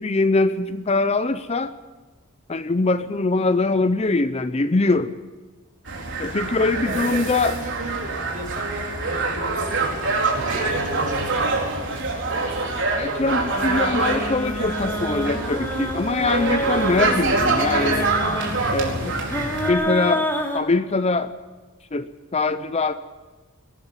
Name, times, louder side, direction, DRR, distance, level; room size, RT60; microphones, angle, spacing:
voice 1, 0.0-1.7 2.5-5.2 6.2-7.6 13.0-18.1 18.7-19.2 19.7-20.3 20.5-21.3 21.9-22.9, left 3 dB, 30° left, 12 dB, 0.5 m, -22 dB
sound 1, 5.9-19.7, right 3 dB, 55° right, 4.5 m, -25 dB
voice 2, 6.8-11.4, right 2 dB, 40° right, 2 dB, 5.3 m, -34 dB
sound 2, 13.5-20.6, equal, 10° left, 2.9 m, -28 dB
22.0 x 13.0 x 9.5 m, 1.3 s
head